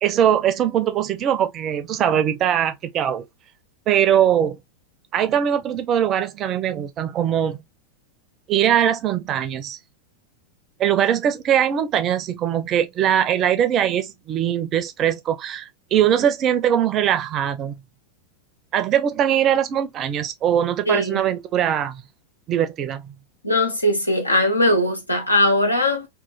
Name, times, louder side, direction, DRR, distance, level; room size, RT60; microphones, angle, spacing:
voice 1, 0.0-3.2 3.9-4.6 5.1-7.6 8.5-9.8 10.8-17.7 18.7-22.0 22.5-23.0, right 10 dB, 30° right, 0.5 m, -21 dB
voice 2, 20.9-21.2 23.4-26.1, left 1 dB, 85° left, 0.7 m, -20 dB
3.0 x 2.2 x 2.3 m
figure-of-eight pair, 90°, 0 cm